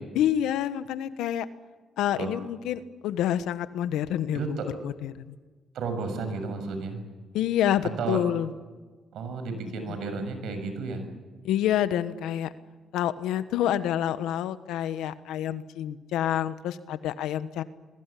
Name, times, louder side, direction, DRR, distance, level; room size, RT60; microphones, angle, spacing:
voice 1, 0.1-1.4 2.0-4.6 4.8-5.4 7.3-8.5 9.9-10.0 11.4-12.5 12.9-17.6, left 11 dB, 90° left, 12 dB, 1.3 m, -28 dB
voice 2, 4.3-4.6 5.7-7.0 8.0-8.2 9.1-11.1, right 4 dB, 75° right, 8 dB, 6.8 m, -32 dB
27.5 x 22.0 x 8.5 m, 1.3 s
cardioid pair, 90°, 0 cm